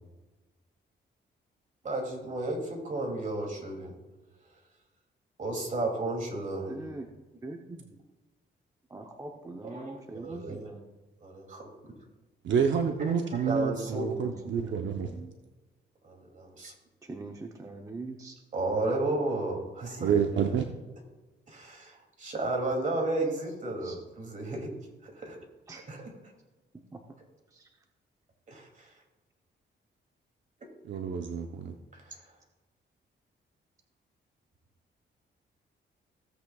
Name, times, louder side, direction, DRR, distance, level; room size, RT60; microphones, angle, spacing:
voice 1, 1.8-3.9 5.4-6.8 9.6-10.6 11.2-11.7 13.1-14.3 16.0-16.7 18.5-20.1 21.5-24.7 25.0-25.4 25.9-26.0 28.5-28.9 31.1-31.2 31.9-32.2, right 2 dB, 40° right, 1 dB, 2.7 m, -33 dB
voice 2, 6.7-7.1 7.4-7.9 8.9-10.9 14.0-14.4 14.7-15.3 17.0-18.4 23.8-24.0 25.7-25.8 26.7-27.2 27.5-27.8, right 2 dB, 15° right, 2 dB, 0.8 m, -43 dB
voice 3, 12.4-15.1 20.0-20.7 30.8-31.8, right 7 dB, 70° right, 4 dB, 0.8 m, -28 dB
16.5 x 8.2 x 2.3 m, 1.2 s
cardioid pair, 120°, 20 cm